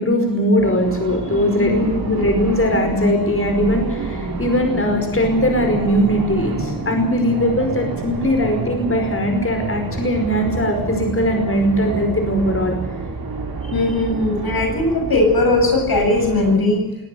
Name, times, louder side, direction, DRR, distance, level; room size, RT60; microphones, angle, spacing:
voice 1, 0.0-1.7 2.1-12.7, equal, 35° left, 5 dB, 5.2 m, -19 dB
sound 1, 0.6-16.6, right 3 dB, 80° right, 5.9 m, -28 dB
voice 2, 1.6-2.3 8.4-8.5 13.6-16.8, left 2 dB, 85° left, 4 dB, 7.6 m, -19 dB
23.0 x 18.5 x 8.0 m, 1.0 s
wide cardioid pair, 90°, 36 cm